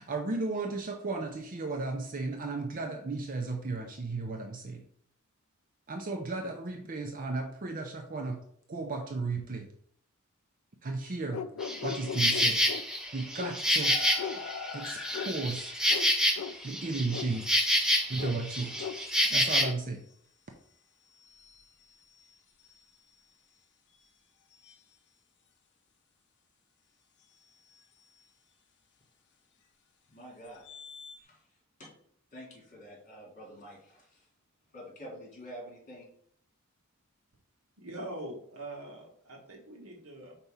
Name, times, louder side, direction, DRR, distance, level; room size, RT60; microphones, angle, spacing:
voice 1, 0.0-4.8 5.9-8.4 8.7-9.7 10.8-11.4 11.8-12.6 13.1-13.9 14.7-15.7 16.6-17.5 18.1-18.9 19.3-20.0, right 3 dB, 40° right, 3 dB, 0.6 m, -34 dB
sound 1, 11.3-12.8 13.4-13.6 14.2-14.4 15.1-15.3 15.9-16.1 16.4-16.5 17.1-17.3 18.2-18.4 18.8-19.0 19.6-19.7, left 6 dB, 70° left, 0.4 m, -37 dB
Insect, 11.6-19.6, equal, 5° right, 0.8 m, -28 dB
sound 2, 13.8-16.5 17.3-17.4 18.4-19.3 21.1-23.1 23.9-24.0 24.5-24.8 27.2-27.3 27.7-28.2 30.4-31.2, left 6 dB, 50° left, 0.8 m, -46 dB
voice 2, 30.1-30.6 31.2-31.4 31.8-31.9 32.3-34.1 34.7-36.1, equal, 35° left, -2 dB, 2.4 m, -47 dB
voice 3, 37.8-40.4, right 1 dB, 70° right, 1 dB, 1.6 m, -43 dB
4.6 x 4.2 x 5.5 m, 0.66 s
head